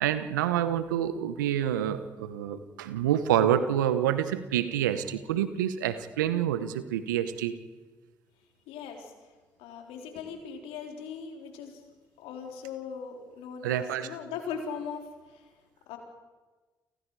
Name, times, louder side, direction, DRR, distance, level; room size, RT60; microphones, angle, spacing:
voice 1, 0.0-7.5 13.6-14.1, right 10 dB, 90° right, 12 dB, 1.1 m, -27 dB
voice 2, 8.7-9.1 9.6-11.8 12.2-15.5 15.9-16.0, left 6 dB, 75° left, 3 dB, 3.9 m, -39 dB
29.5 x 27.0 x 4.9 m, 1.3 s
hypercardioid pair, 45°, 10 cm